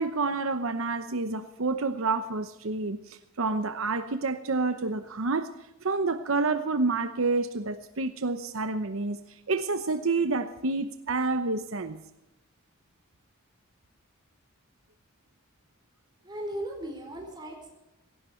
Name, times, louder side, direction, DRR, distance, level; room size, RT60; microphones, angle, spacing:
voice 1, 0.0-5.5 5.8-9.2 9.5-12.0, right 3 dB, 70° right, 10 dB, 0.9 m, -28 dB
voice 2, 16.2-17.7, right 1 dB, 20° right, 2 dB, 4.6 m, -37 dB
17.5 x 16.0 x 4.5 m, 0.93 s
head